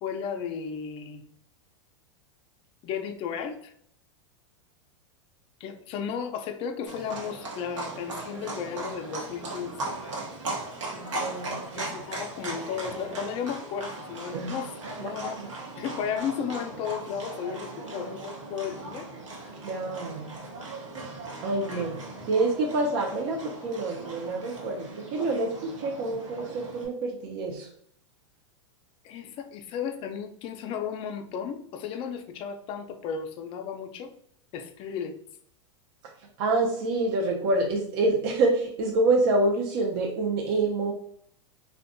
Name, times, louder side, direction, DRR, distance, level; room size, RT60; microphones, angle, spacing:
voice 1, 0.0-1.2 2.8-3.7 5.6-9.7 11.7-14.7 15.0-15.4 15.8-19.1 21.7-21.8 29.0-34.1 34.5-35.2, left 7 dB, 35° left, 7 dB, 0.4 m, -34 dB
Livestock farm animals working animals, 6.9-26.9, right 2 dB, 90° right, 0.8 m, -38 dB
voice 2, 10.9-12.0 14.3-14.6 15.0-15.5 19.6-20.4 21.4-27.7 36.4-40.9, right 2 dB, 55° right, 1 dB, 0.4 m, -27 dB
2.6 x 2.2 x 2.5 m, 0.66 s
hypercardioid pair, 120°, 16 cm